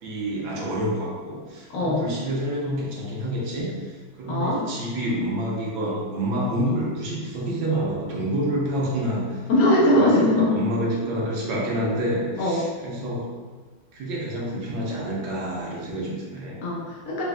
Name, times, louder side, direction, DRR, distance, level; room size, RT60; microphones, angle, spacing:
voice 1, 0.0-9.4 10.0-13.3 13.9-16.6, right 1 dB, 70° right, -4 dB, 1.6 m, -28 dB
voice 2, 4.3-4.6 9.5-10.6 12.4-12.6 16.6-17.2, left 1 dB, 80° left, -5 dB, 0.7 m, -20 dB
4.2 x 3.4 x 2.4 m, 1.4 s
omnidirectional pair, 2.4 m